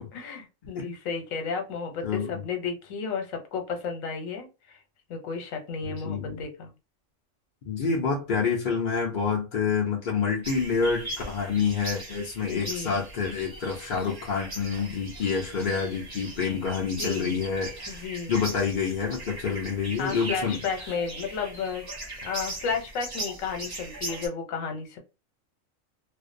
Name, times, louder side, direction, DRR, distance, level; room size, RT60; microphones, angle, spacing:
voice 1, 0.1-4.8 5.1-6.7 12.5-13.0 17.0-17.4 17.9-18.3 20.0-21.9 22.2-25.0, left 5 dB, 80° left, 1.1 m, -33 dB
voice 2, 2.0-2.4 5.8-6.4 7.7-18.0 18.3-20.6, left 5 dB, 50° left, 0.6 m, -28 dB
sound 1, 10.4-24.3, right 2 dB, 25° right, 0.5 m, -39 dB
2.5 x 2.1 x 2.5 m
omnidirectional pair, 1.4 m